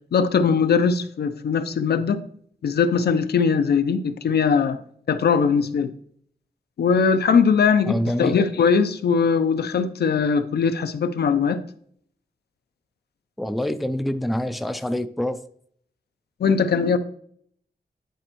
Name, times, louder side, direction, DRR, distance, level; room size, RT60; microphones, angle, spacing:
voice 1, 0.1-2.2 2.6-4.8 5.1-5.9 6.8-11.6 16.4-17.0, left 6 dB, 85° left, 0.6 m, -20 dB
voice 2, 7.9-8.4 13.4-15.4, left 1 dB, ahead, 0.3 m, -26 dB
10.0 x 4.3 x 3.0 m
wide cardioid pair, 150°, 16 cm